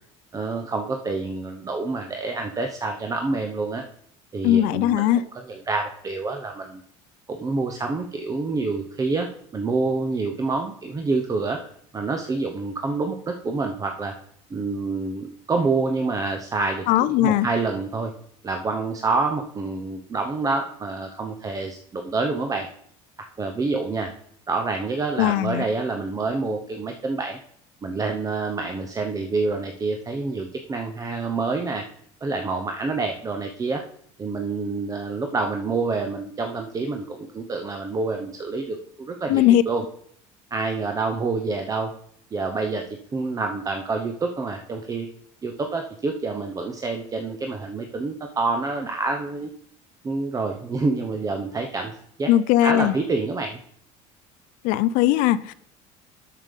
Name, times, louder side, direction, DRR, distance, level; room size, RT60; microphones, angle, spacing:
voice 1, 0.3-3.8 4.3-6.8 7.3-9.3 9.5-11.6 11.9-14.1 14.5-18.1 18.4-22.7 23.4-24.1 24.5-27.4 27.8-31.8 32.2-33.8 34.2-39.8 40.5-41.9 42.3-42.8 43.1-45.1 45.4-49.5 50.0-51.9 52.2-52.3 52.6-53.6, right 3 dB, 25° right, 0.8 m, -27 dB
voice 2, 4.4-5.2 16.9-17.5 25.2-25.6 39.3-39.6 52.3-52.9 54.6-55.5, left 13 dB, 75° left, 0.4 m, -19 dB
7.3 x 6.6 x 5.3 m
cardioid pair, 120°, 14 cm